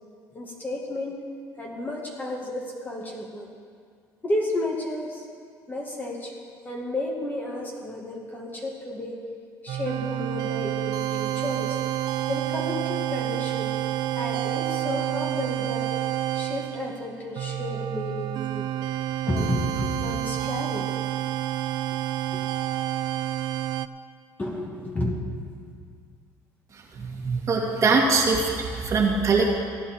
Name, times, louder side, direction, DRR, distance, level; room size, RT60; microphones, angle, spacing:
voice 1, 0.3-1.2 1.6-3.5 4.2-5.3 5.7-6.3 6.6-9.2 9.6-11.8 12.3-13.7 14.2-15.9 16.3-18.7 19.3-20.9 22.3-22.4 24.4-25.2, left 1 dB, 20° left, -1 dB, 2.2 m, -32 dB
sound 1, 9.7-23.9, right 12 dB, 65° right, 0.4 m, -29 dB
voice 2, 27.0-29.5, right 4 dB, 40° right, -1 dB, 2.1 m, -22 dB
16.0 x 9.9 x 4.5 m, 2.1 s
cardioid pair, 100°, 8 cm